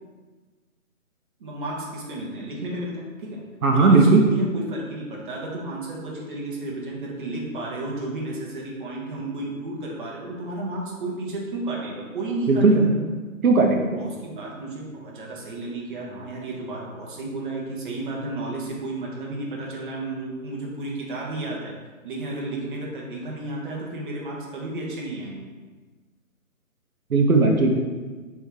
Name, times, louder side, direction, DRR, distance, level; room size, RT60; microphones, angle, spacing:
voice 1, 1.4-13.1 13.9-21.7 22.0-25.6, right 2 dB, 40° right, -3 dB, 1.0 m, -32 dB
voice 2, 3.6-4.2 12.5-12.9 13.4-13.9 27.1-27.8, right 3 dB, 80° right, 1 dB, 0.8 m, -17 dB
3.5 x 3.3 x 4.6 m, 1.4 s
figure-of-eight pair, 145°, 41 cm